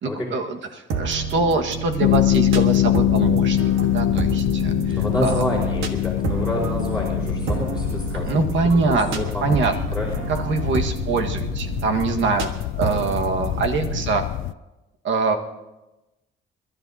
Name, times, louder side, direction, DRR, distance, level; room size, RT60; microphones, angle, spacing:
voice 1, 0.0-5.4 8.1-9.7 10.3-12.5 12.7-14.2 15.0-15.4, right 4 dB, 70° right, 4 dB, 1.7 m, -24 dB
sound 1, 0.9-14.0, right 5 dB, 90° right, 1.5 m, -30 dB
sound 2, 2.0-14.5, left 14 dB, 80° left, 0.4 m, -24 dB
voice 2, 5.0-8.3 8.9-9.6 9.9-10.2, left 1 dB, 5° right, -6 dB, 4.6 m, -28 dB
29.0 x 12.5 x 2.8 m, 1.0 s
cardioid pair, 90°, 20 cm